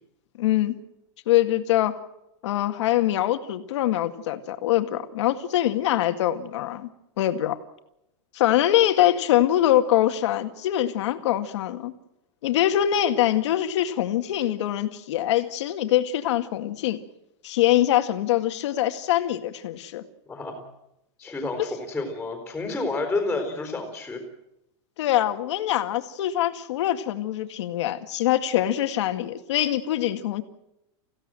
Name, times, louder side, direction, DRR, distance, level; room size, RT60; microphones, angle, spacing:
voice 1, 0.4-0.7 1.3-2.0 2.4-6.9 7.2-7.6 8.3-11.9 12.4-17.0 17.4-20.0 25.0-30.4, left 13 dB, 70° left, 7 dB, 2.0 m, -23 dB
voice 2, 20.3-20.6 21.2-24.2, left 3 dB, 5° left, 3 dB, 4.1 m, -30 dB
28.5 x 16.0 x 7.7 m, 0.87 s
supercardioid pair, 165°, 15 cm